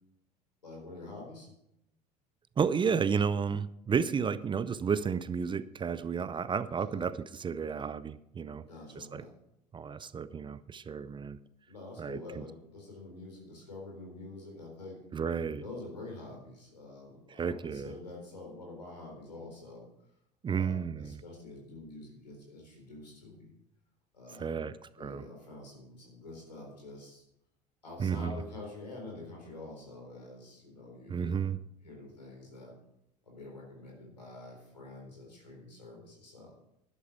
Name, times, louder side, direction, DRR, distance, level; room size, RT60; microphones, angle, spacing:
voice 1, 0.6-1.5 6.8-7.0 8.6-9.3 11.7-15.0 15.6-19.9 20.5-23.5 24.1-24.7 25.0-27.2 27.8-31.5 31.8-32.7 33.2-36.6, left 2 dB, 85° left, 0 dB, 4.0 m, -47 dB
voice 2, 2.6-8.7 9.0-9.2 9.7-11.4 12.0-12.4 15.1-15.6 17.3-17.9 20.4-21.2 24.4-24.7 25.0-25.2 28.0-28.4 31.1-31.6, right 6 dB, 25° right, 16 dB, 0.6 m, -32 dB
11.5 x 11.0 x 4.6 m, 0.80 s
figure-of-eight pair, 65°, 21 cm